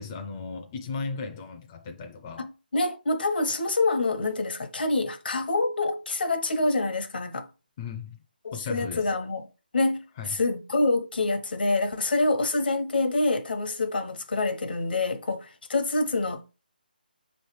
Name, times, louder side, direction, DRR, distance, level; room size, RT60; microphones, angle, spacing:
voice 1, 0.0-2.5 7.8-8.2 8.5-9.1 10.2-10.4, left 5 dB, 20° left, 0.4 m, -36 dB
voice 2, 2.4-7.5 8.4-9.5 9.7-16.5, left 2 dB, 75° left, 0.9 m, -26 dB
5.1 x 3.1 x 3.1 m
hypercardioid pair, 170°, 5 cm